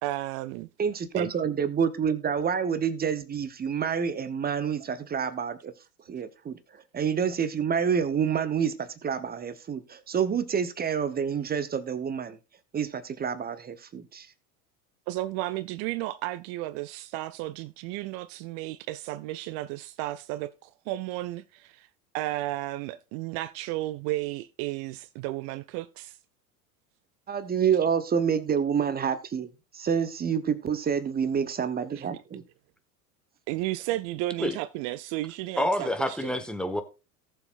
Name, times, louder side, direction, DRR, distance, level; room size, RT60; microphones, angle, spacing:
voice 1, 0.0-0.7 1.1-1.3 15.1-21.9 22.1-26.2 31.9-32.2 33.5-36.4, right 16 dB, 35° right, 0.4 m, -33 dB
voice 2, 0.8-5.7 6.1-6.6 6.9-12.4 12.7-14.3 27.3-29.5 29.7-32.4, right 7 dB, 20° right, 0.9 m, -28 dB
voice 3, 35.6-36.8, left 1 dB, ahead, 1.5 m, -27 dB
18.5 x 7.0 x 2.5 m
figure-of-eight pair, 80°, 46 cm